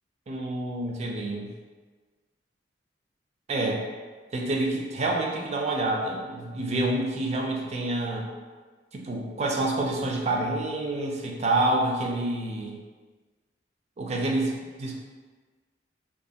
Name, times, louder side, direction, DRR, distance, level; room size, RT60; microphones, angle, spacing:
voice 1, 0.3-1.5 3.5-3.8 4.3-8.3 8.9-12.8 14.0-14.5 14.8-14.9, right 2 dB, 40° right, 0 dB, 0.3 m, -28 dB
2.4 x 2.3 x 2.7 m, 1.4 s
head